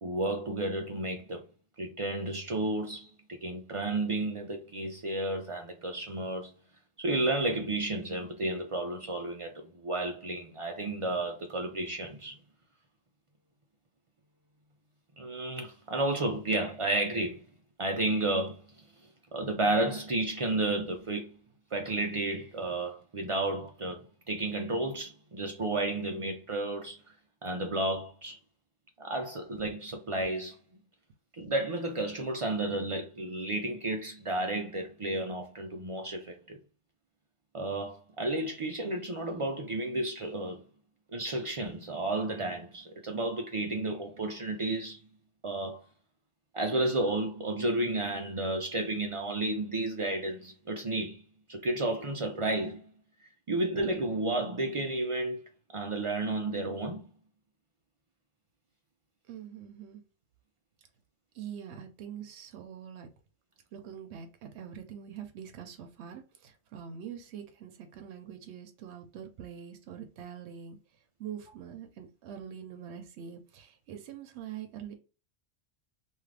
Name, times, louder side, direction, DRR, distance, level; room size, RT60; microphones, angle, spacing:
voice 1, 0.0-1.4 1.8-6.5 7.0-12.4 15.2-17.4 17.8-18.9 19.3-21.4 21.7-27.0 27.4-28.4 29.0-30.6 31.4-36.6 37.5-40.6 41.1-45.0 45.4-45.8 46.5-51.2 51.5-52.8 53.5-55.4 55.7-57.1, right 2 dB, 60° right, 0.3 m, -32 dB
voice 2, 59.3-60.0 61.3-63.1 63.7-70.8 71.2-74.9, right 8 dB, 80° right, 0.9 m, -44 dB
2.6 x 2.4 x 3.2 m
omnidirectional pair, 1.1 m